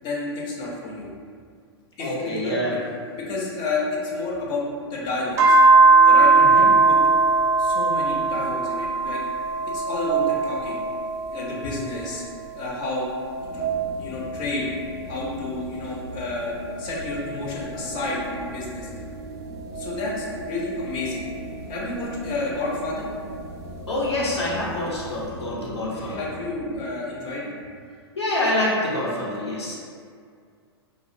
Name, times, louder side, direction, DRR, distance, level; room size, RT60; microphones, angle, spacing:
voice 1, 0.0-1.1 2.0-2.8 3.1-4.6 4.9-5.6 6.1-7.0 7.6-9.2 9.7-10.8 11.3-12.2 12.5-13.1 13.4-13.6 14.0-14.7 15.1-18.9 19.5-21.3 21.7-23.0 25.9-27.5, left 2 dB, 35° left, -3 dB, 0.5 m, -30 dB
voice 2, 2.0-2.7 6.5-6.7 23.9-26.3 28.2-29.7, left 1 dB, 85° left, -6 dB, 0.6 m, -26 dB
sound 1, 5.4-12.1 12.5-15.4 16.0-18.8 19.6-22.0 23.4-24.4, right 3 dB, 20° right, 0.3 m, -22 dB
sound 2, 13.4-26.9, right 1 dB, 90° right, 0.6 m, -40 dB
2.3 x 2.0 x 2.6 m, 2.1 s
hypercardioid pair, 105°, 14 cm